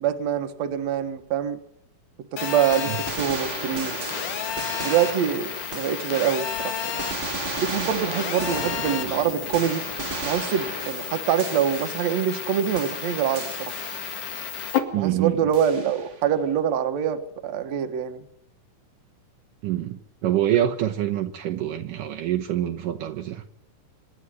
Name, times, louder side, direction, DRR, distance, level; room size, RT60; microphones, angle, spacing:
voice 1, 0.0-1.6 2.3-3.9 4.6-7.0 7.6-9.8 10.2-13.7 15.0-18.3, right 9 dB, 55° right, 2.4 m, -25 dB
Telephone, 2.4-14.8, left 8 dB, 65° left, 3.4 m, -32 dB
sound 1, 2.7-6.4 6.8-12.5 12.7-14.4 15.5-16.3, right 3 dB, 30° right, 1.4 m, -35 dB
voice 2, 14.9-15.5 19.6-23.4, right 12 dB, 70° right, 2.5 m, -26 dB
26.0 x 11.0 x 9.8 m
omnidirectional pair, 4.1 m